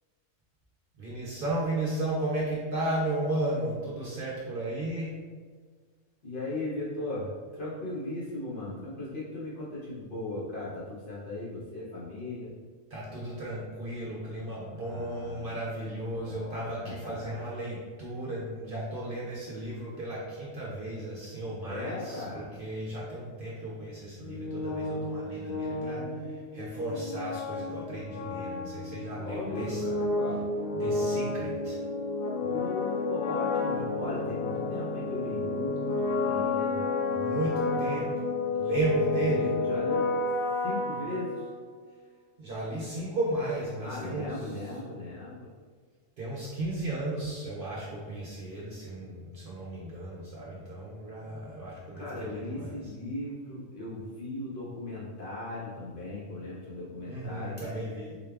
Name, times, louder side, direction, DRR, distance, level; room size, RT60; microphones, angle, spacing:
voice 1, 0.9-5.1 12.9-29.9 30.7-31.8 37.1-38.1 38.5-39.5 42.4-44.7 46.2-52.9 57.0-58.2, right 2 dB, 50° right, -5 dB, 0.8 m, -34 dB
voice 2, 6.2-12.5 14.8-15.5 16.1-17.5 21.6-22.5 25.5-26.3 29.2-30.5 32.4-37.2 37.6-38.2 39.2-40.1 40.6-41.5 43.8-45.5 51.9-57.8, left 2 dB, 45° left, -8 dB, 1.1 m, -38 dB
sound 1, 24.2-41.9, left 3 dB, 60° left, 0.6 m, -31 dB
3.9 x 2.3 x 3.3 m, 1.5 s
omnidirectional pair, 1.4 m